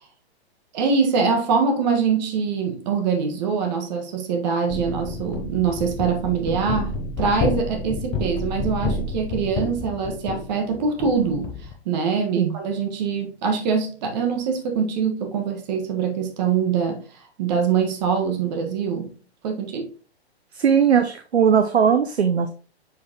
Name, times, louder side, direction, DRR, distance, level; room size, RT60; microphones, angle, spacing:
voice 1, 0.7-11.5 11.8-17.0 17.4-19.1 19.4-19.9, right 5 dB, 40° right, 1.5 m, -23 dB
sound 1, 4.7-11.7, left 3 dB, 15° left, 0.7 m, -29 dB
voice 2, 20.5-22.5, right 7 dB, 80° right, 0.7 m, -19 dB
6.9 x 4.8 x 2.9 m
figure-of-eight pair, 120°, 32 cm